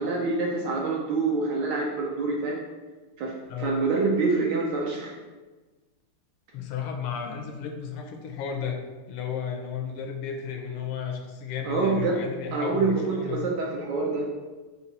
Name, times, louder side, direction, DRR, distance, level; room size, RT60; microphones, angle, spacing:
voice 1, 0.0-2.6 3.2-5.1 11.6-12.2 12.5-14.3, right 3 dB, 70° right, -1 dB, 1.1 m, -26 dB
voice 2, 6.5-8.8 9.1-13.4, left 7 dB, 80° left, 3 dB, 1.5 m, -33 dB
5.4 x 2.4 x 4.1 m, 1.3 s
omnidirectional pair, 2.4 m